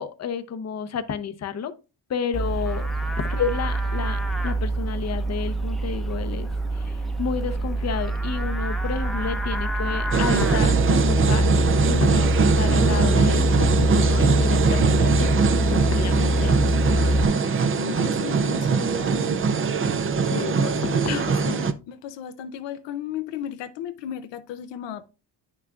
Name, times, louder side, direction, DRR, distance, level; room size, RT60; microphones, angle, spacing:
voice 1, 0.0-1.7 2.1-2.9 3.2-11.5 11.8-15.4 15.7-16.6 20.3-21.3, left 6 dB, 40° left, 0.7 m, -31 dB
Livestock farm animals working animals, 2.3-17.2, right 1 dB, ahead, 0.7 m, -24 dB
sound 1, 10.1-21.7, right 5 dB, 30° right, 0.5 m, -22 dB
voice 2, 16.9-19.4 20.3-25.1, left 9 dB, 90° left, 0.7 m, -35 dB
9.2 x 5.9 x 2.4 m
cardioid pair, 115°, 42 cm